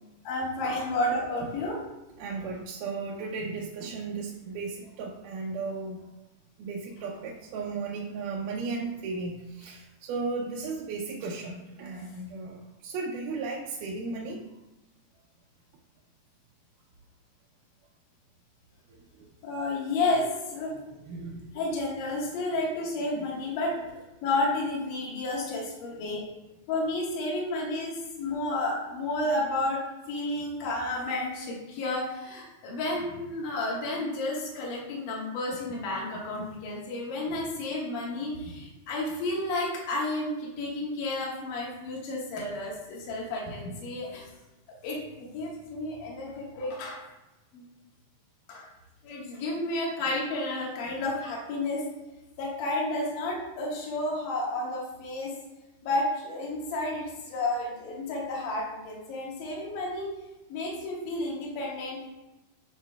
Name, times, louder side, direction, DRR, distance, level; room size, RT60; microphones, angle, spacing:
voice 1, 0.2-1.8 19.4-20.7 21.5-23.7 24.2-26.2 26.7-29.8 30.1-44.2 44.8-47.0 47.5-47.6 48.5-48.7 49.0-51.8 52.4-55.3 55.8-60.1 60.5-62.1, left 2 dB, 70° left, -4 dB, 2.9 m, -31 dB
voice 2, 2.2-6.0 6.6-14.4 19.2-19.3 21.0-21.5 23.1-23.2, right 4 dB, 80° right, -2 dB, 2.1 m, -35 dB
11.5 x 4.6 x 2.3 m, 1.0 s
omnidirectional pair, 4.1 m